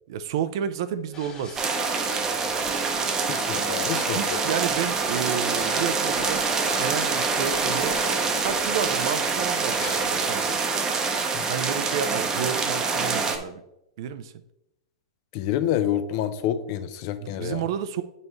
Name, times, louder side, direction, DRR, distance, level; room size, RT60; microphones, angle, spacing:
voice 1, 0.1-1.6 3.9-6.5 6.7-8.0 8.4-10.6 11.5-13.6 14.0-14.3 17.2-18.0, right 8 dB, 60° right, 12 dB, 0.5 m, -31 dB
sound 1, 1.1-10.5, left 3 dB, 25° left, 2.0 m, -40 dB
sound 2, 1.6-13.4, right 4 dB, 20° right, 0.8 m, -25 dB
voice 2, 3.3-4.4 11.3-11.5 15.3-17.6, left 10 dB, 50° left, 11 dB, 0.6 m, -28 dB
8.2 x 5.5 x 3.1 m, 0.87 s
hypercardioid pair, 130°, 3 cm